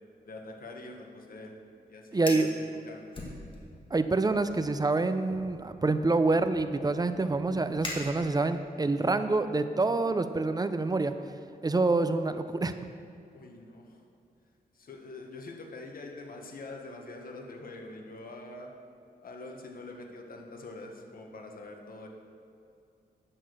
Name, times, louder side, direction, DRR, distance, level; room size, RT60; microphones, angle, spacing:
voice 1, 0.2-1.5 1.9-3.2 13.3-14.0 14.7-18.7 19.2-22.1, left 2 dB, 60° left, 2 dB, 1.4 m, -45 dB
Fire, 2.1-2.6 3.1-3.9 4.3-4.6 5.3-8.7, left 2 dB, 30° left, 1.9 m, -42 dB
voice 2, 2.1-2.5 3.9-11.1 11.6-12.7, right 3 dB, 25° right, 10 dB, 0.5 m, -27 dB
9.3 x 6.5 x 6.2 m, 2.5 s
cardioid pair, 90°, 17 cm